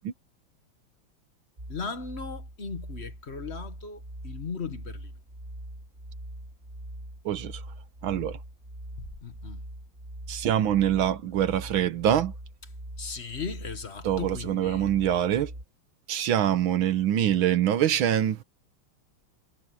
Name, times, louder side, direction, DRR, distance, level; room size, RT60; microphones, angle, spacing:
sound 1, 1.6-15.6, right 1 dB, 25° right, 4.4 m, -42 dB
voice 1, 1.7-5.1 9.0-9.6 13.0-14.9, left 5 dB, 35° left, 1.3 m, -37 dB
voice 2, 7.3-7.6 8.0-8.4 10.3-12.3 14.0-15.5 16.1-18.4, right 10 dB, 75° right, 1.8 m, -24 dB
omnidirectional pair, 2.3 m